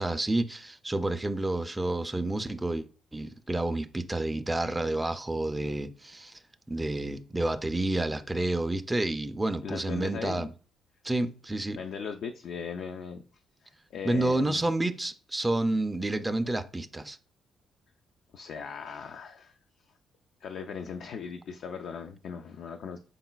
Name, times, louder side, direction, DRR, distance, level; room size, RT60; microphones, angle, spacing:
voice 1, 0.0-2.9 3.1-6.4 6.7-10.5 11.0-11.8 14.0-17.2, right 2 dB, 15° right, 0.3 m, -29 dB
voice 2, 9.6-10.5 11.8-13.2 13.6-14.6 18.3-19.5 20.4-23.0, left 6 dB, 70° left, 0.3 m, -38 dB
4.0 x 3.8 x 2.2 m
cardioid pair, 90°, 0 cm